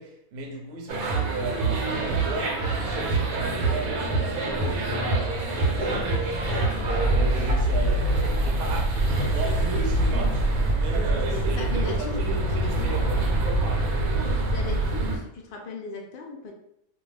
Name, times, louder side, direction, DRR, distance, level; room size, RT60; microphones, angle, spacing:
voice 1, 0.0-13.3, right 2 dB, 55° right, 0.7 m, -35 dB
sound 1, 0.9-15.2, right 2 dB, 90° right, 1.1 m, -25 dB
sound 2, 4.4-7.8 8.1-10.1 10.4-10.5 10.7-10.8 11.2-11.4 11.9-12.2 13.1-13.2, equal, 20° left, 1.0 m, -40 dB
voice 2, 11.3-13.0 14.5-16.5, left 4 dB, 80° left, 0.4 m, -37 dB
2.4 x 2.2 x 3.2 m
omnidirectional pair, 1.5 m